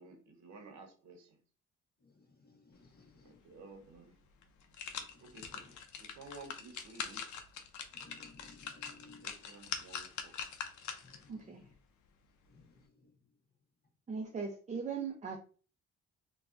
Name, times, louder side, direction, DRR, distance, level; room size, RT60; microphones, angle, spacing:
voice 1, 0.0-1.4 3.2-4.2 5.2-7.3 9.2-10.4, right 3 dB, 70° right, 0.9 m, -54 dB
voice 2, 2.0-3.4 4.9-5.3 7.9-9.3 11.0-11.7 12.5-13.1, left 3 dB, 30° left, 0.8 m, -60 dB
sound 1, 3.9-4.0 4.4-11.3 11.7-11.8, left 7 dB, 70° left, 0.6 m, -44 dB
voice 3, 11.3-11.6 14.1-15.4, right 5 dB, 25° right, 0.5 m, -39 dB
3.4 x 2.3 x 2.4 m
cardioid pair, 90°, 30 cm